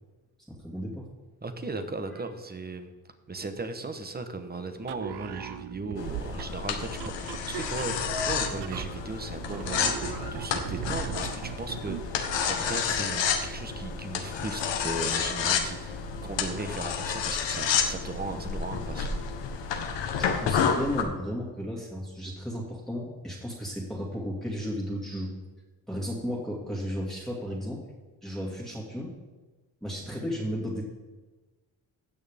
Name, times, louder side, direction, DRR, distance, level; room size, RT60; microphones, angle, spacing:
voice 1, 0.5-1.1 20.2-25.3 25.9-27.8 28.2-29.1 29.8-30.8, equal, ahead, -3 dB, 2.2 m, -34 dB
voice 2, 1.4-2.9 3.3-19.2, right 3 dB, 20° right, 8 dB, 1.2 m, -37 dB
sound 1, 4.8-12.1, right 12 dB, 65° right, 0.6 m, -39 dB
sound 2, 6.0-21.0, left 6 dB, 85° left, 1.3 m, -30 dB
16.5 x 6.5 x 3.6 m, 1.2 s
cardioid pair, 75°, 43 cm